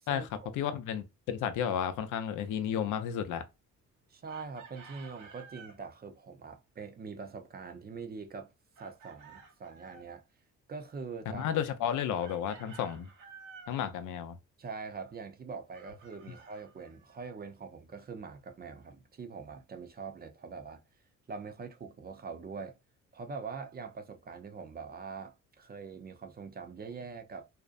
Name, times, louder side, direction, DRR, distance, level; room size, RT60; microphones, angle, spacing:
voice 1, 0.5-3.4 11.3-13.1 13.7-14.4, left 9 dB, 80° left, 0.5 m, -32 dB
voice 2, 4.1-8.5 8.8-10.2 10.7-11.4 14.6-20.8 21.3-22.8 23.1-27.5, right 5 dB, 30° right, 0.5 m, -43 dB
Chicken rooster, 4.3-5.8 8.8-10.1 12.2-13.8 15.7-17.3, right 5 dB, 80° right, 0.8 m, -53 dB
2.6 x 2.1 x 2.4 m
cardioid pair, 90°, 30 cm